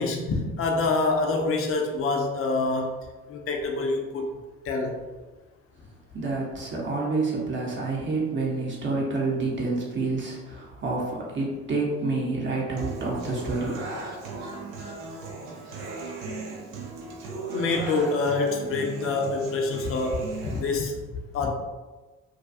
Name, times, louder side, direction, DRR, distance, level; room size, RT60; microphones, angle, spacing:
voice 1, 0.0-2.9 3.3-4.3 4.6-5.0 17.4-21.0 21.3-21.5, left 3 dB, 35° left, 2 dB, 0.5 m, -26 dB
voice 2, 6.1-13.8, right 3 dB, 30° right, -3 dB, 0.8 m, -28 dB
Human voice / Acoustic guitar, 12.8-20.8, right 3 dB, 70° right, 0.7 m, -37 dB
2.4 x 2.2 x 2.6 m, 1.2 s
hypercardioid pair, 55°, 38 cm